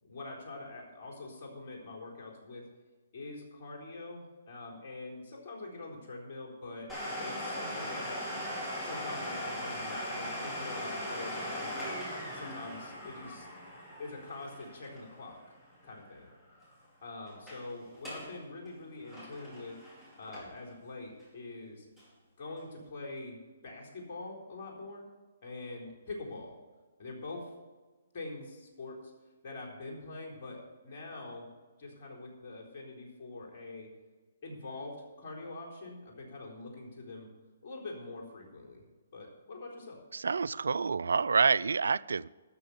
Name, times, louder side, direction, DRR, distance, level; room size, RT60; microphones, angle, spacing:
voice 1, 0.0-2.7 3.1-6.9 7.2-8.2 8.8-11.9 12.3-13.5 14.0-15.4 15.8-16.3 17.0-19.8 20.2-21.9 22.4-25.1 25.4-26.5 27.0-27.5 28.1-29.0 29.4-31.5 31.8-33.9 34.4-37.3 37.6-38.8 39.1-40.0, left 2 dB, 45° left, 0 dB, 4.1 m, -44 dB
Domestic sounds home sounds, 6.9-16.3 16.6-16.7 17.3-17.6 17.9-18.3 18.7-20.7 21.2-21.3 22.0-22.1, equal, ahead, 4.8 m, -39 dB
voice 2, 40.1-42.3, right 5 dB, 80° right, 20 dB, 0.3 m, -28 dB
13.0 x 6.6 x 6.9 m, 1.3 s
hypercardioid pair, 140°, 0 cm